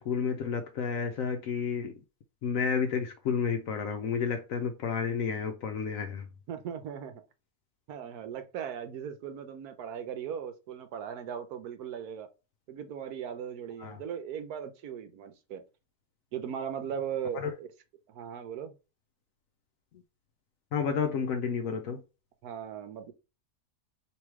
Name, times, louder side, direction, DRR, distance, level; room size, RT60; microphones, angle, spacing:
voice 1, 0.0-2.0 2.4-6.3 13.8-14.0 17.3-17.5 19.9-20.0 20.7-22.0, left 6 dB, 70° left, 1.0 m, -31 dB
voice 2, 6.5-7.2 7.9-12.3 12.7-15.6 16.3-17.7 18.1-18.8 22.4-23.1, right 8 dB, 80° right, 1.2 m, -38 dB
3.1 x 3.1 x 4.6 m
omnidirectional pair, 1.6 m